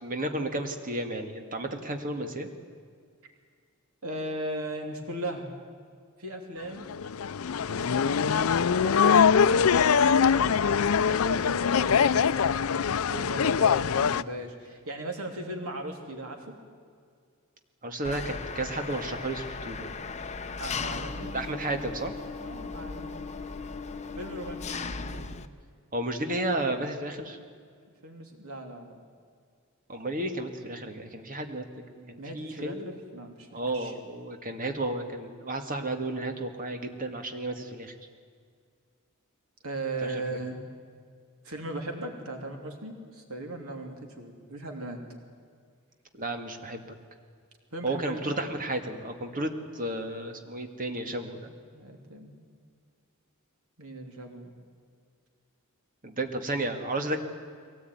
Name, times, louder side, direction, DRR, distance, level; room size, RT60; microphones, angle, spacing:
voice 1, 0.0-2.5 17.8-19.9 21.3-22.1 25.9-27.4 29.9-31.6 32.0-32.9 33.5-37.9 40.0-40.2 46.1-46.9 47.8-51.5 56.0-57.2, right 1 dB, 40° right, 5 dB, 2.0 m, -32 dB
voice 2, 4.0-5.5 6.2-6.9 7.6-16.6 20.6-21.4 22.4-23.3 24.2-25.4 28.0-29.0 32.2-33.9 39.6-40.6 41.4-45.0 47.7-48.6 50.9-51.0 51.7-52.4 53.8-54.6, right 1 dB, 85° right, 3 dB, 3.2 m, -38 dB
sound 1, 6.9-14.2, left 6 dB, 75° left, 0.5 m, -23 dB
Engine, 18.0-25.5, left 4 dB, 30° left, 0.9 m, -37 dB
22.5 x 18.0 x 9.4 m, 2.1 s
head